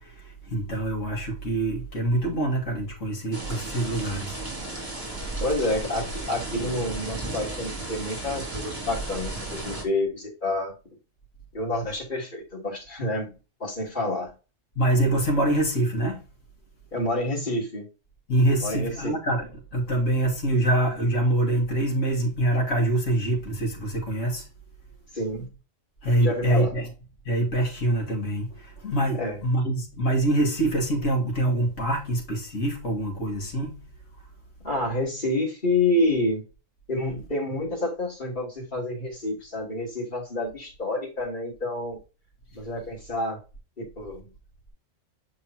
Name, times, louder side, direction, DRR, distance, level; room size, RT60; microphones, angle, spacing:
voice 1, 0.0-4.4 14.8-16.2 18.3-24.5 26.0-26.9 27.3-33.9, right 1 dB, 75° left, 2.3 m, -25 dB
sound 1, 3.3-9.8, right 2 dB, 25° right, 2.7 m, -34 dB
voice 2, 5.4-10.7 11.5-14.3 16.9-17.9 18.6-19.2 25.1-25.5 26.2-26.7 29.2-29.4 34.6-36.4 36.9-42.0 42.5-43.4 43.8-44.3, left 1 dB, 35° left, 3.4 m, -28 dB
7.2 x 4.8 x 2.9 m
omnidirectional pair, 1.3 m